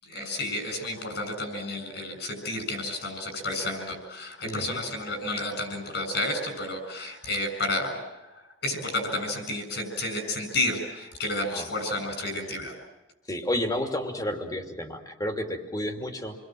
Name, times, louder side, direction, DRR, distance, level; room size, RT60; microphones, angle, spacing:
voice 1, 0.0-12.7, left 1 dB, 60° left, 6 dB, 7.4 m, -31 dB
voice 2, 4.4-4.8 11.5-11.7 13.3-16.4, left 1 dB, 20° left, 4 dB, 2.7 m, -31 dB
29.0 x 22.0 x 7.7 m, 1.0 s
head